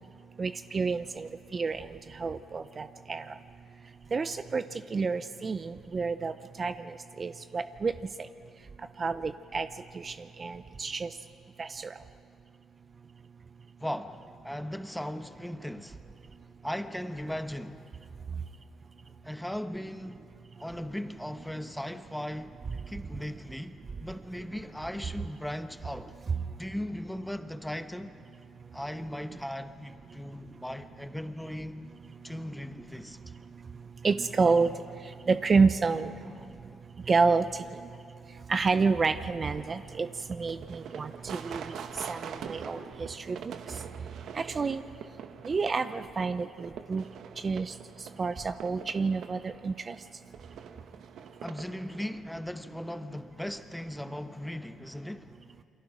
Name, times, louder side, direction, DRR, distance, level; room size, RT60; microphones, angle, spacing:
voice 1, 0.4-3.3 4.1-4.6 4.9-6.3 6.6-7.9 9.0-9.7 9.9-11.1 11.6-11.9 34.0-34.7 35.3-36.1 37.1-37.8 38.5-43.5 44.3-44.8 45.5-47.0 47.4-47.7 48.2-50.0, right 4 dB, 35° right, 0.6 m, -29 dB
voice 2, 13.8-16.0 16.6-17.8 19.2-20.2 20.6-22.6 22.9-26.1 26.6-28.2 28.7-31.9 32.2-33.2 51.4-55.3, left 1 dB, 5° left, 1.0 m, -38 dB
sound 1, 39.5-52.1, right 7 dB, 75° right, 1.1 m, -45 dB
28.5 x 23.5 x 5.0 m
cardioid pair, 90°, 0 cm